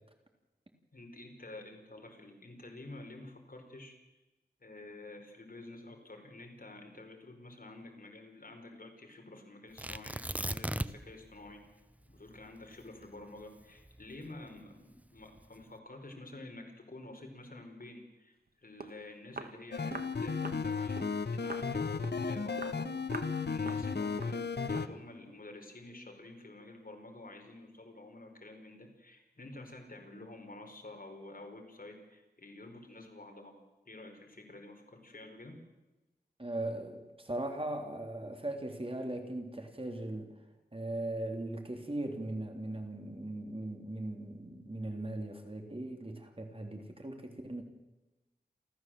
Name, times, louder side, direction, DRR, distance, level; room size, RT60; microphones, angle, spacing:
voice 1, 0.9-3.9 4.6-11.6 12.0-21.9 22.2-23.2 23.5-33.6 33.8-35.6, left 2 dB, 60° left, 3 dB, 4.7 m, -50 dB
Tearing, 9.8-11.2 11.5-11.6 12.1-14.5 15.2-15.6, right 1 dB, 10° right, 0.8 m, -37 dB
Walk footsteps, 18.5-18.6 18.8-19.0 19.4-19.6 19.9-20.1 20.5-20.7 21.0-21.2 21.5-21.7 22.0-22.3 22.6-22.8 23.1-23.4 23.7-23.9 24.2-24.4 24.7-25.0, right 3 dB, 65° right, 1.8 m, -44 dB
sound 1, 19.7-24.9, left 5 dB, 80° left, 1.1 m, -34 dB
voice 2, 36.4-40.4 40.7-47.6, right 1 dB, 35° right, 4 dB, 3.4 m, -39 dB
29.0 x 14.0 x 7.8 m, 1.1 s
wide cardioid pair, 65°, 17 cm